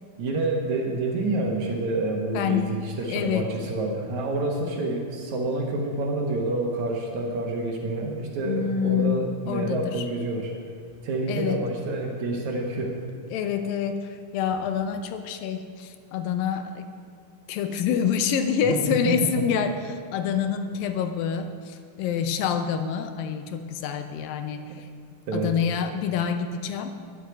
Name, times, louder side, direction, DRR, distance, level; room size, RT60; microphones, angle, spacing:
voice 1, 0.2-10.5 11.0-13.0 18.6-19.5 25.3-25.5, right 2 dB, 65° right, 1 dB, 2.2 m, -28 dB
voice 2, 2.3-2.8 3.1-3.5 8.5-10.1 11.3-11.6 13.3-16.9 17.5-24.9 25.3-26.9, left 7 dB, 80° left, 8 dB, 2.4 m, -27 dB
9.8 x 7.9 x 9.3 m, 2.1 s
omnidirectional pair, 4.2 m